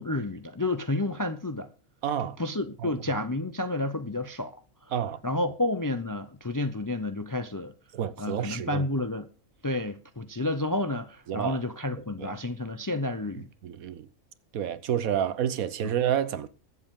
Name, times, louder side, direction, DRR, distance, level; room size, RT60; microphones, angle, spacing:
voice 1, 0.0-1.7 2.4-4.6 5.2-7.7 8.2-9.3 9.6-13.5 15.8-15.9, left 2 dB, 30° left, 0.3 m, -30 dB
voice 2, 2.0-2.4 2.8-2.9 4.9-5.2 7.9-8.8 11.3-11.6 12.2-12.3 13.6-14.1 14.5-16.5, right 9 dB, 85° right, 1.3 m, -29 dB
21.5 x 7.8 x 3.7 m
omnidirectional pair, 1.4 m